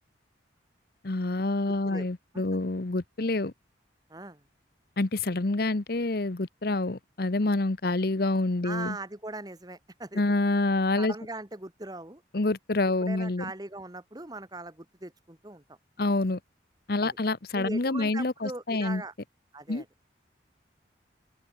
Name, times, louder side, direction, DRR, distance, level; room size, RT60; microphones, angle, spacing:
voice 1, 1.0-3.5 5.0-9.0 10.1-11.1 12.3-13.5 16.0-16.4 16.9-19.0 19.7-19.8, left 2 dB, 55° left, 0.9 m, -27 dB
voice 2, 4.1-4.4 5.3-5.4 8.6-10.2 11.0-12.2 13.0-15.6 17.0-17.2 17.5-19.1 19.5-19.9, right 2 dB, 20° right, 1.5 m, -40 dB
head